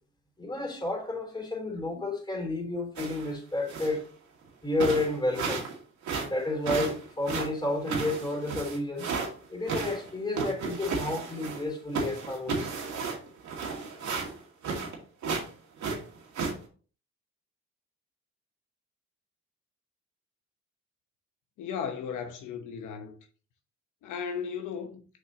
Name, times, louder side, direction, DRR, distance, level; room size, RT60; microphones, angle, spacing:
voice 1, 0.4-4.0 4.6-5.7 6.2-9.1 9.5-12.8, left 2 dB, 15° left, 3.4 m, -31 dB
sound 1, 3.0-3.3 3.7-4.0 4.5-4.6 4.8-5.7 6.0-9.3 9.7-11.7 11.9-15.0 15.2-15.5 15.8-16.5, right 4 dB, 70° right, 2.2 m, -33 dB
voice 2, 21.6-23.1 24.0-25.0, left 7 dB, 85° left, 1.0 m, -36 dB
6.6 x 5.3 x 2.8 m
cardioid pair, 90°, 30 cm